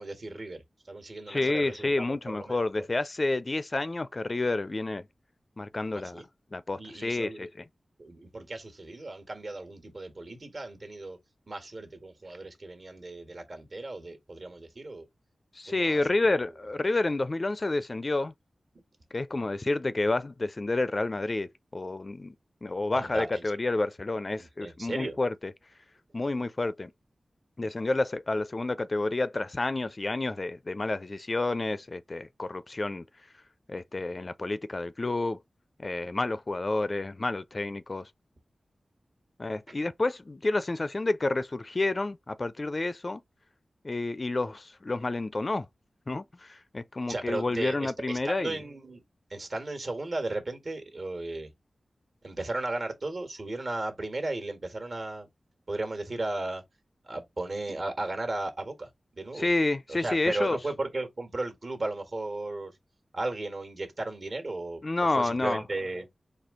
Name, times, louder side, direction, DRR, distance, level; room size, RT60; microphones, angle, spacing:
voice 1, 0.0-2.9 5.9-6.3 6.8-7.5 8.0-11.2 11.5-15.1 15.6-16.4 22.9-23.5 24.4-25.2 47.1-49.0 49.3-51.5 52.2-55.3 55.7-56.6 57.0-59.5 59.9-62.8 63.1-64.8 65.1-66.1, right 2 dB, 55° right, 1.5 m, -35 dB
voice 2, 1.3-5.0 5.6-6.2 6.5-7.5 15.5-18.3 19.1-22.3 22.6-25.3 26.1-26.9 27.6-33.0 33.7-35.4 35.8-38.1 39.4-43.2 43.8-45.7 46.1-48.5 59.4-60.6 64.8-65.6, left 2 dB, 40° left, 0.4 m, -29 dB
4.3 x 2.7 x 3.7 m
wide cardioid pair, 75°, 0 cm